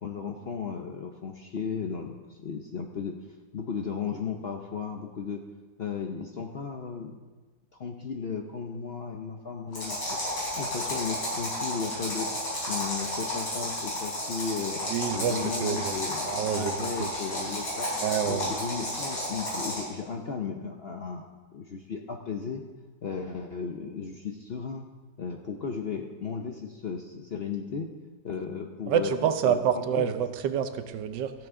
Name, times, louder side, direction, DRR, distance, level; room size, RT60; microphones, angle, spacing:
voice 1, 0.0-3.2 3.5-5.4 5.8-7.2 7.8-10.2 10.6-14.8 15.1-17.9 18.3-21.3 21.5-22.6 23.0-24.9 25.2-27.9 28.2-30.1, left 6 dB, 55° left, 3 dB, 0.7 m, -35 dB
sound 1, 9.7-19.9, left 1 dB, 85° left, 5.3 m, -32 dB
voice 2, 14.9-15.9 16.3-17.1 18.0-18.5 28.9-31.3, right 9 dB, 85° right, 9 dB, 1.4 m, -28 dB
13.5 x 12.0 x 3.7 m, 1.3 s
omnidirectional pair, 1.9 m